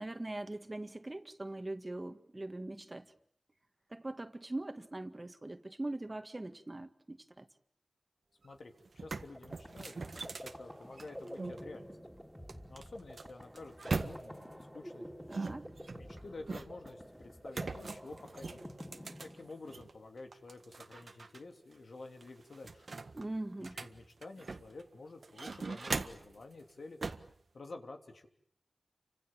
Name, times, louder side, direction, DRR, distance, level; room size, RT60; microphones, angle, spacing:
voice 1, 0.0-3.1 3.9-7.5 15.3-15.7 23.1-23.8, right 2 dB, 30° right, 1.9 m, -41 dB
voice 2, 8.4-11.9 12.7-15.1 16.0-22.9 23.6-27.0 27.5-28.3, left 3 dB, 80° left, 3.3 m, -50 dB
sound 1, 8.4-8.5 8.9-11.6 12.5-14.5 15.3-16.9 17.5-19.9 20.3-21.4 21.7-21.8 22.2-24.8 25.2-26.4 27.0-27.3, right 3 dB, 70° right, 1.6 m, -41 dB
sound 2, 9.1-19.9, equal, ahead, 3.4 m, -49 dB
30.0 x 25.5 x 7.5 m
wide cardioid pair, 70°, 0 cm